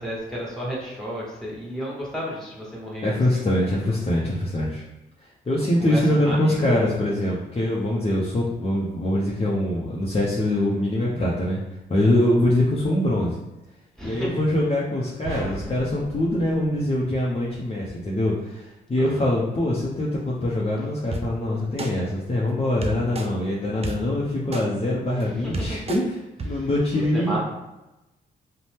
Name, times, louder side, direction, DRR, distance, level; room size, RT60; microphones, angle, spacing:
voice 1, 0.0-4.0 5.5-7.2 14.0-14.4 19.0-19.3 25.1-25.8 26.5-27.4, equal, ahead, -6 dB, 1.4 m, -33 dB
voice 2, 3.0-4.8 5.2-11.6 11.9-13.4 14.0-26.1 26.4-27.4, left 1 dB, 30° left, -5 dB, 0.6 m, -23 dB
sound 1, 15.2-17.6, right 2 dB, 70° right, 0.7 m, -37 dB
sound 2, 21.1-21.2 21.8-21.9 22.8-23.3 23.8-23.9 24.5-24.6 25.2-25.3 25.5-26.0 26.4-26.5, right 2 dB, 30° right, 0.5 m, -29 dB
2.6 x 2.1 x 3.3 m, 0.98 s
supercardioid pair, 45°, 21 cm